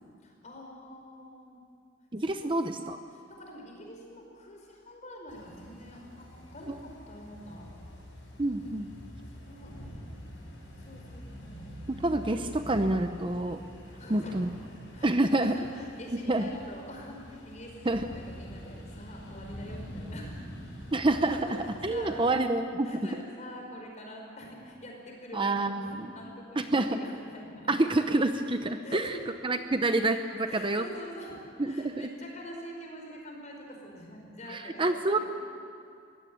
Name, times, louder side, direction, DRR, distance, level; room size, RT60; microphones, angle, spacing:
voice 1, 0.2-1.6 2.4-2.6 3.1-7.7 9.4-9.7 10.8-11.8 14.0-14.5 14.9-20.4 21.3-22.4 22.8-27.7 28.8-29.2 30.5-35.2, equal, 40° left, 1 dB, 4.9 m, -45 dB
voice 2, 2.1-3.0 6.7-6.8 8.4-8.9 11.9-13.6 14.1-14.5 15.0-15.5 16.3-16.5 17.9-18.1 20.9-21.4 21.8-22.9 25.3-26.1 26.6-27.0 27.7-29.1 29.4-30.8 31.6-32.1 34.5-35.2, right 2 dB, 25° right, 8 dB, 0.7 m, -27 dB
sound 1, 5.3-22.3, equal, 80° left, 7.1 m, -46 dB
22.5 x 16.5 x 8.8 m, 2.4 s
head